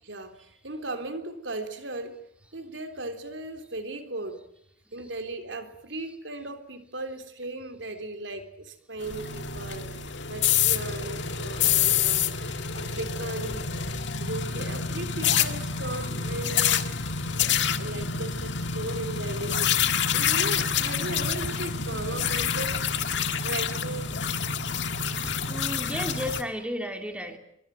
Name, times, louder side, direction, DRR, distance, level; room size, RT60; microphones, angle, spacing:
voice 1, 0.0-2.2 2.5-4.4 4.9-13.7 14.2-19.8 20.1-22.8 23.4-24.2, right 2 dB, 70° right, 7 dB, 3.7 m, -37 dB
sound 1, 9.0-26.4, left 7 dB, 65° left, 1.8 m, -27 dB
voice 2, 24.7-27.4, equal, 5° right, 5 dB, 3.4 m, -34 dB
25.0 x 23.0 x 9.2 m, 0.75 s
head